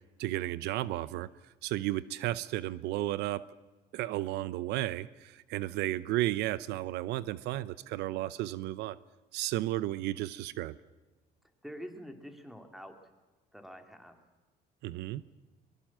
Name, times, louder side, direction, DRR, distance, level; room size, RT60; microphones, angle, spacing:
voice 1, 0.2-1.3 1.6-3.4 3.9-9.0 9.3-10.8 14.8-15.2, right 15 dB, 90° right, 17 dB, 0.7 m, -33 dB
voice 2, 11.6-12.9 13.5-14.2, equal, ahead, 5 dB, 3.1 m, -46 dB
23.0 x 21.5 x 7.5 m, 1.2 s
cardioid pair, 110°, 17 cm